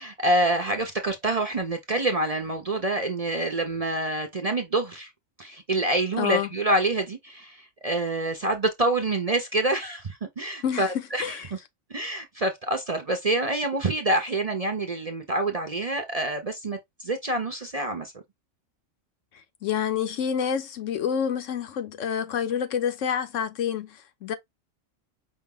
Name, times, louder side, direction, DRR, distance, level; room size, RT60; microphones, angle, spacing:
voice 1, 0.0-5.1 5.4-11.4 11.9-18.1, right 2 dB, 35° right, 0.6 m, -27 dB
voice 2, 6.2-6.5 10.6-10.9 11.2-11.5 19.3-24.3, left 8 dB, 75° left, 1.1 m, -28 dB
5.4 x 2.2 x 3.6 m
omnidirectional pair, 1.3 m